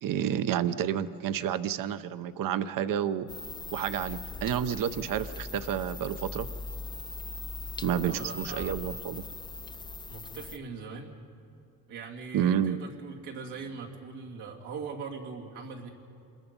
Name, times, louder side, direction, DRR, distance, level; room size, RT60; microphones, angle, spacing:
voice 1, 0.0-3.3 3.7-6.5 7.8-9.2 12.3-12.8, right 9 dB, 55° right, 13 dB, 0.8 m, -30 dB
sound 1, 3.3-10.6, left 3 dB, 10° left, 0.4 m, -40 dB
voice 2, 8.1-8.8 10.1-11.1 11.9-15.9, right 5 dB, 90° right, -2 dB, 2.8 m, -41 dB
27.0 x 21.0 x 5.3 m, 2.6 s
cardioid pair, 110°, 39 cm